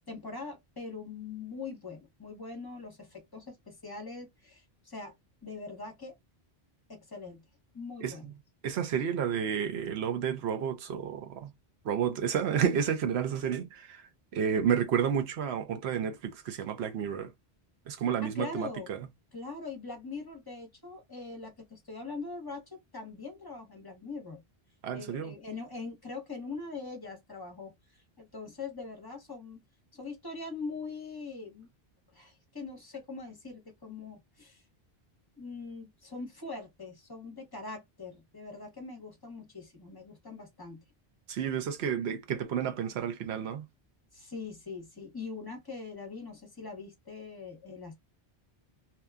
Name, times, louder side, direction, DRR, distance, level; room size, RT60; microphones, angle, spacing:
voice 1, 0.1-5.1 5.4-6.1 6.9-7.4 7.7-8.3 18.2-18.9 19.3-24.4 24.9-29.6 29.9-31.7 32.1-34.6 35.4-40.8 44.1-47.9, left 4 dB, 25° left, 0.8 m, -42 dB
voice 2, 8.6-11.5 11.8-14.0 14.3-17.3 17.9-19.0 24.8-25.3 41.3-43.6, right 8 dB, 90° right, 0.9 m, -31 dB
2.8 x 2.2 x 2.3 m
omnidirectional pair, 1.1 m